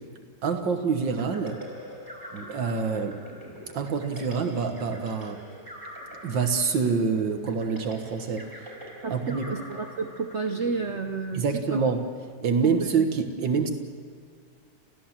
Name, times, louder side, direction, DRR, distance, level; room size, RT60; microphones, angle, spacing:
voice 1, 0.4-1.6 2.3-3.2 3.7-5.4 6.2-8.7 9.1-9.4 11.3-12.0 12.4-13.7, right 5 dB, 80° right, 5 dB, 2.1 m, -26 dB
sound 1, 1.2-11.7, equal, 10° right, 5.6 m, -44 dB
voice 2, 9.0-11.8 12.6-12.9, right 4 dB, 50° right, 6 dB, 1.0 m, -31 dB
29.0 x 15.5 x 7.4 m, 2.2 s
omnidirectional pair, 2.0 m